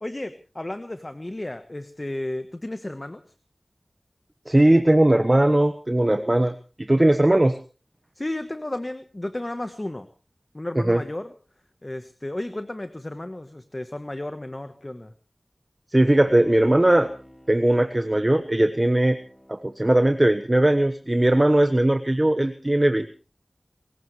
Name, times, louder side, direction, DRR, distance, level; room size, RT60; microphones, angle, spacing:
voice 1, 0.0-3.2 8.1-10.1 10.5-11.3 11.8-15.1, left 1 dB, 35° left, 9 dB, 1.2 m, -33 dB
voice 2, 4.5-7.6 10.8-11.0 15.9-17.1 17.5-19.2 19.5-23.1, right 1 dB, 30° right, 9 dB, 1.1 m, -19 dB
Bowed string instrument, 16.1-20.7 21.1-21.2, equal, 5° left, 6.1 m, -49 dB
29.0 x 15.5 x 3.2 m, 0.35 s
wide cardioid pair, 45°, 0 cm